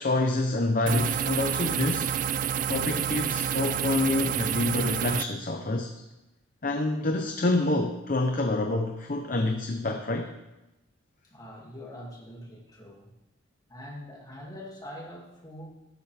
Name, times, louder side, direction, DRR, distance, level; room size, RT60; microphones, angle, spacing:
voice 1, 0.0-2.1 2.7-5.9 6.6-10.3, left 2 dB, 45° left, 4 dB, 0.8 m, -27 dB
sound 1, 0.9-5.2, right 8 dB, 40° right, 0.3 m, -28 dB
voice 2, 11.2-13.1 13.7-15.7, left 1 dB, 20° left, -3 dB, 2.4 m, -43 dB
13.5 x 12.5 x 3.5 m, 0.98 s
head